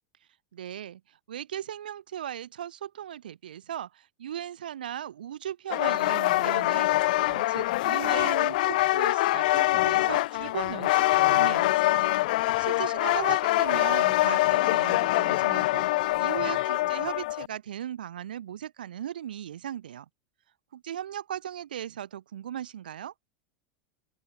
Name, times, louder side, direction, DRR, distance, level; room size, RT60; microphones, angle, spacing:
voice 1, 0.5-12.1 12.4-20.1 20.7-23.1, right 10 dB, 85° right, 0.8 m, -38 dB
sound 1, 5.7-17.5, left 18 dB, 70° left, 0.4 m, -24 dB
open air
hypercardioid pair, 110°, 5 cm